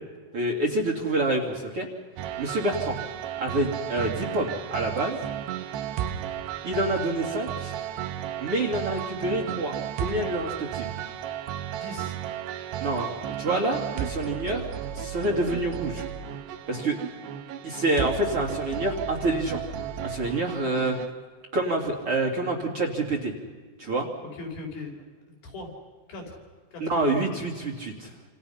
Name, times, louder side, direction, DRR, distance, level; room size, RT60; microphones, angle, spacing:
voice 1, 0.3-1.9 2.4-3.0 3.4-5.2 6.6-7.7 8.4-10.9 12.8-14.7 14.9-16.0 16.7-17.0 17.6-19.6 20.0-21.0 21.5-23.3 23.8-24.1 26.8-28.3, right 2 dB, 40° right, -1 dB, 2.8 m, -27 dB
sound 1, 2.2-21.1, right 10 dB, 80° right, 3.1 m, -34 dB
voice 2, 11.7-12.2 24.3-25.1 25.4-25.7 26.1-26.4 26.7-26.9, left 2 dB, 60° left, 1 dB, 6.3 m, -39 dB
28.5 x 28.0 x 5.7 m, 1.5 s
omnidirectional pair, 5.0 m